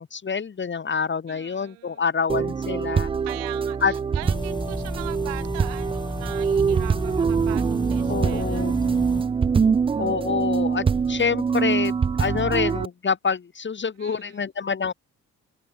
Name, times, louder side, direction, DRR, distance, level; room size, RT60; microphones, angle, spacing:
voice 1, 0.0-3.1 3.8-3.9 8.1-8.7 10.0-14.9, left 5 dB, 30° left, 0.9 m, -26 dB
voice 2, 1.3-2.1 3.2-8.7 14.0-14.4, right 30 dB, 85° right, 4.9 m, -40 dB
sound 1, 2.3-12.9, right 6 dB, 15° right, 0.3 m, -24 dB
sound 2, 4.2-9.2, left 1 dB, 10° left, 6.4 m, -32 dB
open air
hypercardioid pair, 40°, 38 cm